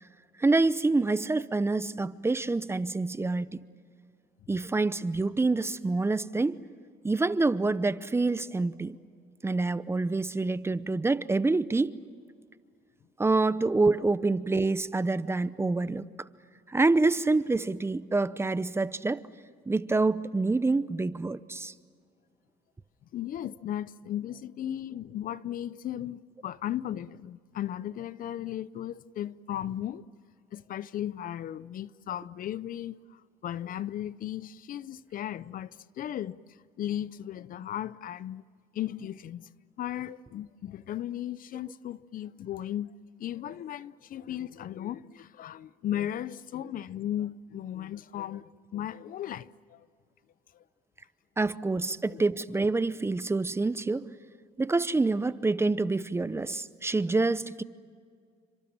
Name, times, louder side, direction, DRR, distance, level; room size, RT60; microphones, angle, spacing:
voice 1, 0.4-3.6 4.5-6.6 7.0-9.0 9.4-12.0 13.2-16.0 16.7-19.2 19.7-21.7 51.4-54.1 54.6-57.6, right 3 dB, 15° right, 0.8 m, -27 dB
voice 2, 23.1-30.0 30.5-36.4 36.8-38.4 38.7-39.5 39.8-42.9 43.2-49.9 50.5-50.6 51.7-52.2, left 11 dB, 55° left, 0.7 m, -36 dB
29.5 x 25.5 x 7.3 m
cardioid pair, 110°, 17 cm